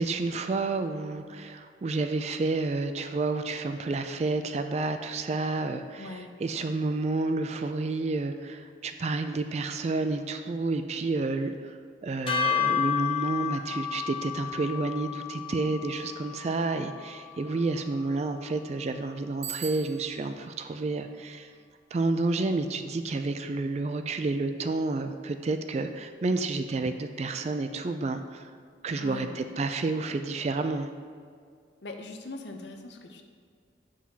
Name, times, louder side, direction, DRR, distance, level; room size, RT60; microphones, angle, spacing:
voice 1, 0.0-21.5 21.9-28.5 28.8-30.9, right 3 dB, 35° right, 8 dB, 0.3 m, -30 dB
voice 2, 6.0-6.3 29.0-29.5 31.8-33.2, left 2 dB, 65° left, 4 dB, 0.7 m, -41 dB
sound 1, 12.3-18.6, left 8 dB, 30° left, 0.7 m, -32 dB
Bicycle bell, 19.4-20.4, right 8 dB, 70° right, 0.6 m, -39 dB
7.7 x 6.1 x 2.8 m, 2.1 s
head